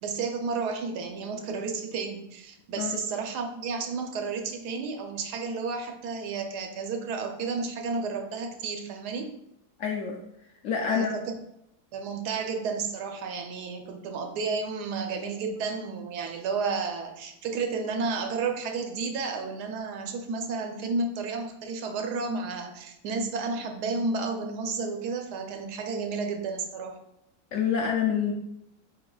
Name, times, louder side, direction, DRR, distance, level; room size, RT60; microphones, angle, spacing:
voice 1, 0.0-9.3 10.9-11.4 11.9-27.0, right 4 dB, 85° right, 4 dB, 1.2 m, -32 dB
voice 2, 9.8-10.2 10.6-11.2 27.5-28.3, left 7 dB, 70° left, 0 dB, 0.7 m, -27 dB
4.8 x 3.9 x 2.3 m, 0.79 s
omnidirectional pair, 1.7 m